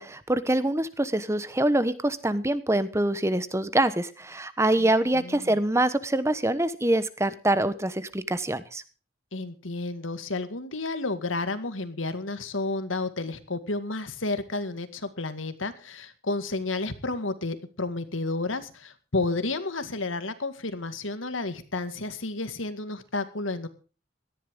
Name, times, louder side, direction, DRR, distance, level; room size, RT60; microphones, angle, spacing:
voice 1, 0.0-8.8, right 1 dB, 15° right, 14 dB, 1.0 m, -25 dB
voice 2, 4.8-5.6 9.3-23.7, left 2 dB, 90° left, 10 dB, 2.1 m, -31 dB
18.0 x 14.0 x 3.8 m, 0.36 s
head